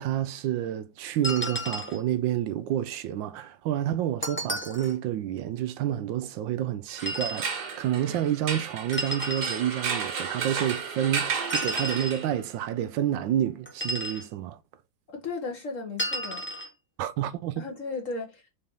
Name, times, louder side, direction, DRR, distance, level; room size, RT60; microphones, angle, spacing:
voice 1, 0.0-14.6 17.0-17.6, right 11 dB, 80° right, 1.3 m, -29 dB
sound 1, 1.2-2.0 4.2-5.0 7.0-7.5 8.9-9.6 11.5-12.2 13.6-14.2 16.0-16.7, equal, 10° left, 0.5 m, -32 dB
sound 2, 6.9-12.6, right 6 dB, 60° right, 1.7 m, -33 dB
voice 2, 15.1-16.5 17.6-18.5, left 3 dB, 45° left, 1.5 m, -35 dB
4.4 x 4.4 x 5.4 m
omnidirectional pair, 2.1 m